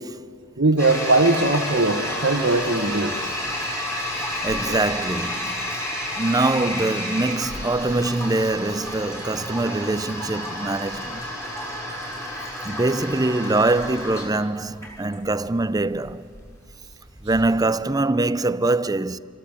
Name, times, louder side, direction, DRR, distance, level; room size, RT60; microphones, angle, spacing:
voice 1, 0.6-3.3 4.7-4.8, right 2 dB, 60° right, 1.6 m, -20 dB
Toilet flush, 0.8-17.5, left 1 dB, 15° left, 7.7 m, -31 dB
voice 2, 4.2-5.8 6.2-11.3 12.6-16.3 17.2-19.2, right 2 dB, 20° right, 0.6 m, -23 dB
27.0 x 24.5 x 8.3 m
head